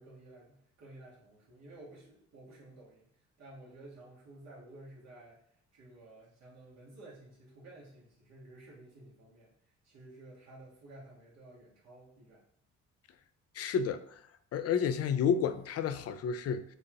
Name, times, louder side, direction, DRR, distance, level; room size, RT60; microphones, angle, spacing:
voice 1, 0.0-3.0 3.4-5.4 5.7-9.5 9.8-12.4, right 2 dB, 60° right, 1.4 m, -53 dB
voice 2, 13.6-14.2 14.5-16.6, left 7 dB, 55° left, 0.4 m, -30 dB
6.7 x 2.4 x 2.9 m
cardioid pair, 90°, 30 cm